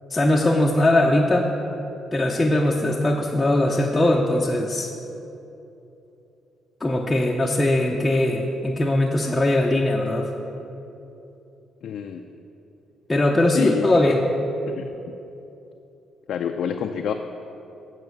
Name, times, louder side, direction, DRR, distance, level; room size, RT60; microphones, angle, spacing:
voice 1, 0.1-1.5 2.1-4.9 6.8-10.3 13.1-14.3, left 1 dB, 15° left, -2 dB, 0.7 m, -20 dB
voice 2, 11.8-12.2 13.5-14.1 14.7-15.1 16.3-17.1, left 7 dB, 70° left, 4 dB, 0.4 m, -28 dB
9.0 x 5.8 x 6.4 m, 2.9 s
cardioid pair, 90°, 0 cm